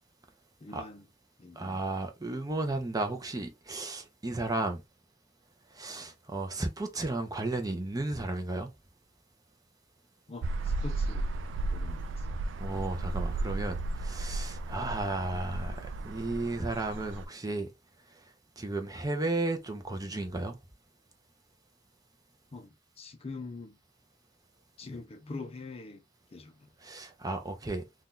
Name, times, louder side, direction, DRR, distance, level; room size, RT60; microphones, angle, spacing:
voice 1, 0.6-1.0 1.4-1.8 5.9-6.1 10.3-11.3 11.7-12.3 22.5-23.8 24.8-26.0 26.3-26.7, left 3 dB, 35° left, 0.5 m, -44 dB
voice 2, 1.6-4.8 5.7-8.7 12.6-17.7 18.6-20.6 26.8-27.8, right 2 dB, 20° right, 0.6 m, -34 dB
sound 1, 10.4-17.2, right 2 dB, 85° right, 0.4 m, -34 dB
2.8 x 2.3 x 3.6 m
head